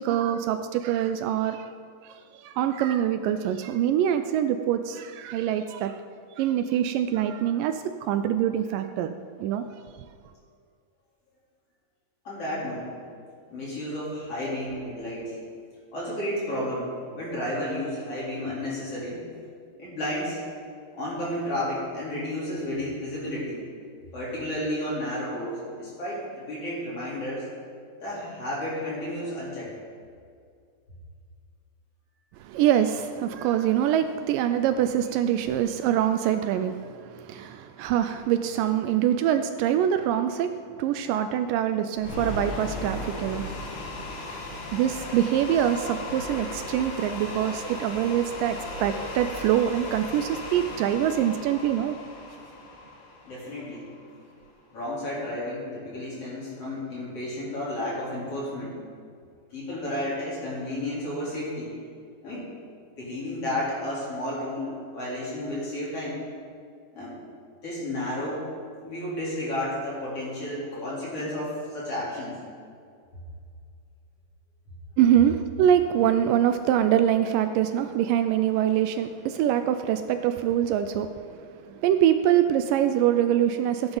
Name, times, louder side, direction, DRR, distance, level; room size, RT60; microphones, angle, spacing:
voice 1, 0.0-1.7 2.0-6.0 6.4-9.7 32.4-43.5 44.7-52.0 75.0-84.0, right 10 dB, 80° right, 9 dB, 2.1 m, -24 dB
voice 2, 12.2-12.9 13.5-15.3 15.9-19.2 19.8-20.4 20.9-23.6 24.1-27.5 28.0-29.7 53.2-53.9 54.7-58.8 59.5-61.7 62.2-62.4 63.0-66.2 66.9-67.2 67.6-68.4 68.8-72.4, left 1 dB, 45° left, -7 dB, 4.5 m, -32 dB
sound 1, 42.0-54.1, left 2 dB, 85° left, 3.4 m, -37 dB
16.5 x 8.9 x 4.0 m, 2.2 s
omnidirectional pair, 4.1 m